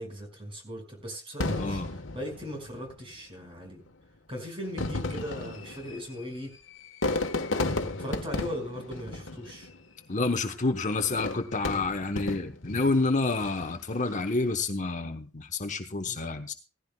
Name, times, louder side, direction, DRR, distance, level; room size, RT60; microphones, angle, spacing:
voice 1, 0.0-3.8 4.3-6.5 8.0-9.7 16.1-16.2, equal, 30° right, 2 dB, 5.5 m, -38 dB
Fireworks, 1.4-3.0 3.9-4.0 4.6-9.9 11.0-12.8 13.3-13.8, left 2 dB, 75° left, 1.3 m, -33 dB
voice 2, 1.6-1.9 10.1-16.5, left 3 dB, 40° left, 7 dB, 1.0 m, -29 dB
17.5 x 15.0 x 2.3 m, 0.31 s
head